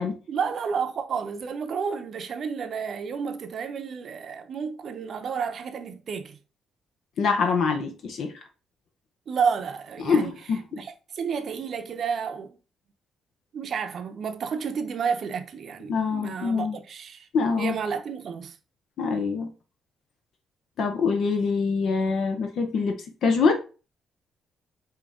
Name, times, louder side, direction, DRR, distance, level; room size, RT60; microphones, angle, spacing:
voice 1, 0.3-6.4 9.3-10.3 10.8-12.5 13.5-17.3 17.6-18.6, right 6 dB, 55° right, 0.7 m, -31 dB
voice 2, 7.2-8.3 10.0-10.8 15.9-16.8 17.3-17.8 19.0-19.5 20.8-23.5, left 5 dB, 70° left, 0.8 m, -25 dB
4.9 x 2.9 x 3.6 m
cardioid pair, 90°, 0 cm